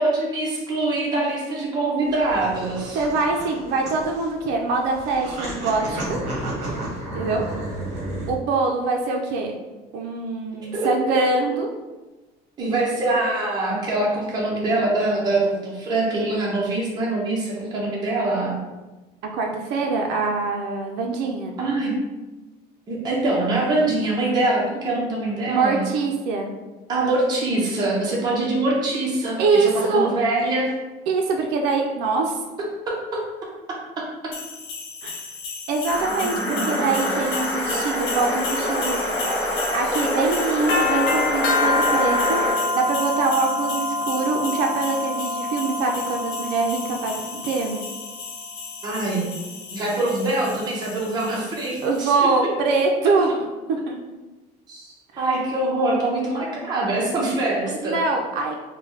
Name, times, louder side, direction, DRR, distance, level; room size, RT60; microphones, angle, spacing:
voice 1, 0.0-3.0 10.7-10.9 12.6-18.6 21.6-21.9 22.9-25.9 26.9-30.7 32.9-33.2 48.8-49.3 49.7-52.1 54.7-58.0, right 2 dB, 25° right, -5 dB, 0.7 m, -24 dB
sound 1, 2.1-8.3, right 1 dB, 45° right, 1.1 m, -32 dB
voice 2, 2.9-6.2 7.1-7.4 8.3-9.6 9.9-11.7 19.3-21.5 25.5-26.5 29.4-30.1 31.1-32.4 35.0-35.2 35.7-39.0 39.7-42.4 42.8-47.8 51.8-53.3 53.7-54.0 57.8-58.5, right 3 dB, 75° right, 1 dB, 0.4 m, -23 dB
sound 2, 34.3-52.0, left 3 dB, 70° left, 0.6 m, -28 dB
sound 3, 35.9-42.6, equal, 15° left, 0.8 m, -26 dB
3.8 x 2.2 x 3.1 m, 1.2 s
cardioid pair, 155°, 17 cm